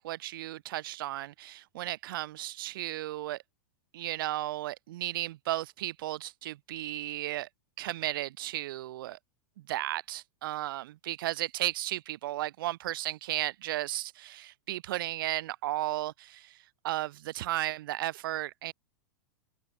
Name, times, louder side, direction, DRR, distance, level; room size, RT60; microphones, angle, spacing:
voice 1, 0.0-3.4 3.9-7.5 7.8-9.2 9.7-18.7, right 15 dB, 70° right, 2.4 m, -34 dB
open air
supercardioid pair, 140°, 12 cm